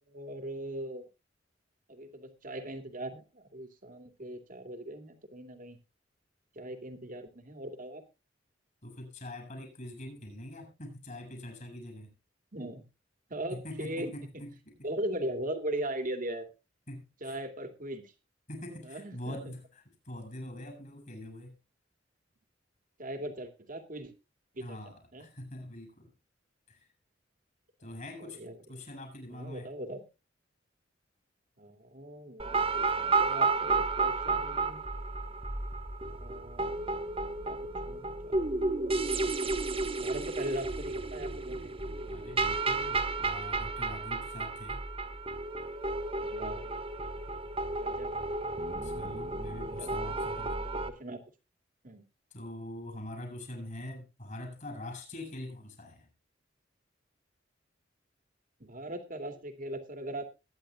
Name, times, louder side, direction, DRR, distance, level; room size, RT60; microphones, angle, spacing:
voice 1, 0.1-1.1 1.9-5.8 6.5-8.0 12.5-12.9 13.3-14.1 14.8-16.5 17.2-18.1 18.8-19.4 23.0-24.1 24.5-24.8 25.1-25.3 28.2-28.6 29.3-30.0 31.6-34.8 36.1-36.7 37.4-38.5 40.0-41.7 46.2-46.7 47.8-48.1 49.8-50.5 50.7-51.2 51.8-52.0 58.6-60.3, right 1 dB, 45° right, 2.5 m, -39 dB
voice 2, 8.8-12.1 13.5-14.9 16.9-17.4 18.5-21.6 24.6-26.1 26.7-26.9 27.8-28.4 28.7-29.7 42.1-44.8 48.8-50.6 52.3-56.1, left 1 dB, 45° left, 7.8 m, -44 dB
sound 1, 32.4-50.9, right 3 dB, 30° right, 1.5 m, -32 dB
22.5 x 10.5 x 2.4 m
head